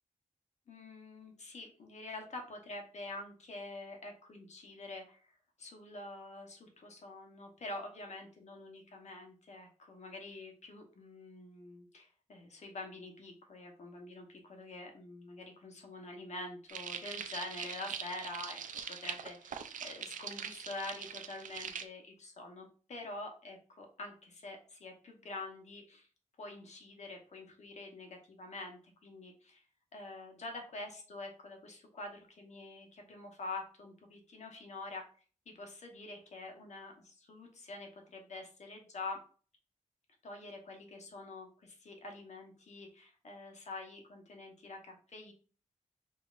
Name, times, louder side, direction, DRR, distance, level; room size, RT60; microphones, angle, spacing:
voice 1, 0.7-26.1 26.4-29.6 29.9-35.0 35.5-39.2 40.2-45.3, left 2 dB, 60° left, 3 dB, 1.0 m, -46 dB
sound 1, 16.7-21.9, right 7 dB, 90° right, 0.4 m, -43 dB
5.3 x 2.8 x 2.4 m, 0.40 s
wide cardioid pair, 140°, 13 cm